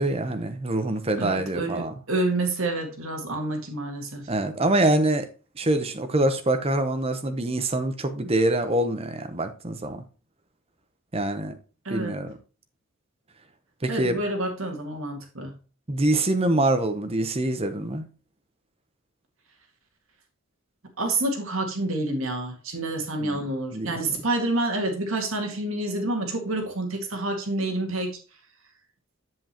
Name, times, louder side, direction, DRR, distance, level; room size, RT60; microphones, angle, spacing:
voice 1, 0.0-1.9 4.3-5.3 5.6-10.0 11.1-11.6 11.9-12.4 13.8-14.2 15.9-18.1 23.2-23.4 23.7-24.0, right 1 dB, 25° right, 0.8 m, -25 dB
voice 2, 1.2-4.3 11.9-12.1 13.9-15.6 21.0-28.2, right 2 dB, 65° right, 1.9 m, -28 dB
7.8 x 7.6 x 2.9 m
head